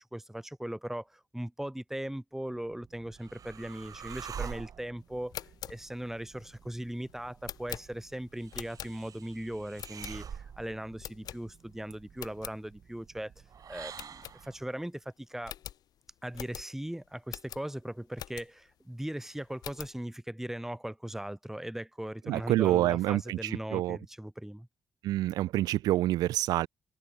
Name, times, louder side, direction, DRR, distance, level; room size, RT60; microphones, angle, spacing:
voice 1, 0.0-5.4 5.7-13.3 13.7-15.5 16.2-24.7, right 1 dB, 5° right, 1.0 m, -39 dB
sound 1, 2.6-14.6, right 7 dB, 65° right, 1.2 m, -47 dB
sound 2, 5.1-9.3 9.8-10.5 11.0-11.8 12.1-12.6 13.0-13.1 13.4-13.5 13.9-14.8 15.1-15.2 15.4-18.7 19.2-20.0, left 11 dB, 80° left, 1.2 m, -45 dB
voice 2, 22.3-24.0 25.0-26.7, right 15 dB, 85° right, 0.3 m, -27 dB
supercardioid pair, 45°, 7 cm